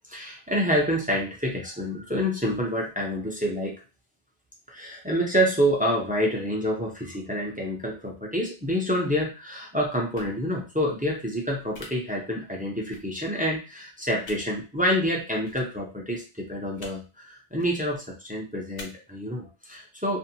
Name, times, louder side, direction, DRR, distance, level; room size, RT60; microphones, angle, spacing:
voice 1, 0.1-3.8 4.7-20.2, equal, 15° right, -1 dB, 0.3 m, -27 dB
sound 1, 10.1-10.3 11.7-11.9 12.9-13.0 14.2-14.4 15.4-15.6 16.7-16.9 17.5-17.7 18.8-18.9, left 3 dB, 60° left, 0.8 m, -43 dB
2.5 x 2.2 x 2.7 m, 0.31 s
omnidirectional pair, 1.1 m